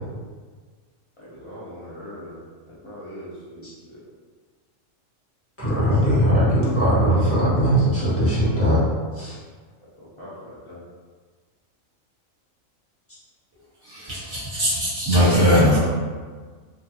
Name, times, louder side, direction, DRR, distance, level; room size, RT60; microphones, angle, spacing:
voice 1, 1.2-2.4 2.7-4.0 9.8-10.8, equal, 50° left, -9 dB, 0.3 m, -41 dB
voice 2, 5.6-8.9 9.1-9.3, equal, 10° left, -10 dB, 0.9 m, -19 dB
voice 3, 13.8-15.8, equal, 15° right, -12 dB, 1.3 m, -19 dB
3.0 x 2.3 x 2.7 m, 1.5 s
omnidirectional pair, 1.4 m